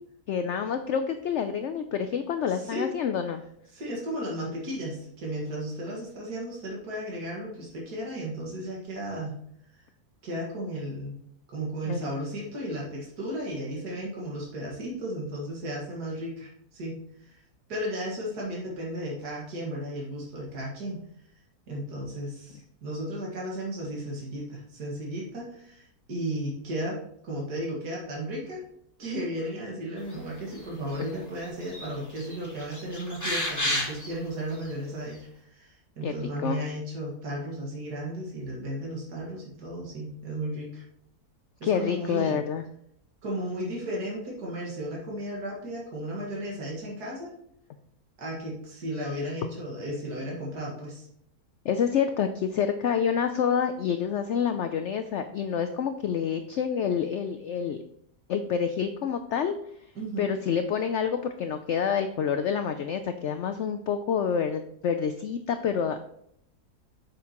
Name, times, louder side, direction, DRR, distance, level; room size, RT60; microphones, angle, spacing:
voice 1, 0.3-3.4 11.8-12.0 36.0-36.6 41.6-42.7 51.6-57.8 58.3-59.5 60.2-66.0, left 7 dB, 70° left, 8 dB, 0.6 m, -28 dB
voice 2, 2.5-2.9 3.7-9.4 9.7-9.8 10.2-11.1 11.5-17.4 17.7-21.0 21.7-27.0 27.2-28.6 29.0-40.8 41.6-42.4 43.2-47.3 48.2-51.1 60.0-60.3, right 1 dB, 75° right, -4 dB, 2.4 m, -34 dB
sound 1, 30.5-31.1 31.4-31.9 32.2-34.1 34.6-34.7, left 1 dB, 10° left, 1.9 m, -31 dB
8.2 x 6.5 x 3.0 m, 0.71 s
omnidirectional pair, 1.7 m